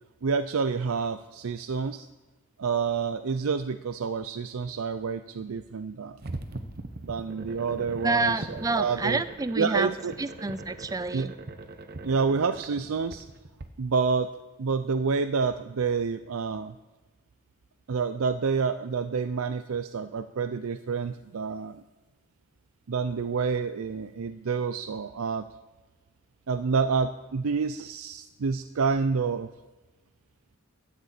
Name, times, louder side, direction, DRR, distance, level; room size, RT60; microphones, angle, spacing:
voice 1, 0.2-2.1 2.6-6.2 7.0-9.2 9.6-10.1 11.1-11.3 12.0-13.3 13.8-14.3 14.6-16.7 17.9-21.8 22.9-25.5 26.5-29.5, right 5 dB, 85° right, 11 dB, 0.5 m, -28 dB
sound 1, 6.2-13.7, right 2 dB, 50° right, 1.0 m, -41 dB
voice 2, 8.0-9.9 10.2-11.3, right 3 dB, 15° right, 13 dB, 0.4 m, -28 dB
12.5 x 6.8 x 8.3 m, 1.2 s
head